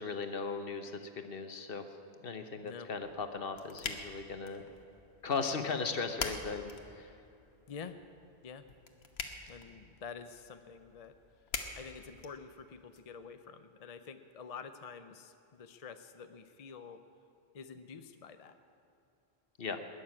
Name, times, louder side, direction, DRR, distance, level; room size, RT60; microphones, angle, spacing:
voice 1, 0.0-2.0 2.2-4.6 5.2-7.1 19.6-19.8, left 4 dB, 65° left, 7 dB, 1.2 m, -37 dB
sound 1, 3.0-13.0, left 4 dB, 85° left, 1.3 m, -46 dB
voice 2, 9.5-11.1 11.7-17.0 17.5-18.6, left 6 dB, 45° left, 9 dB, 0.6 m, -48 dB
20.0 x 6.9 x 9.6 m, 2.7 s
omnidirectional pair, 1.0 m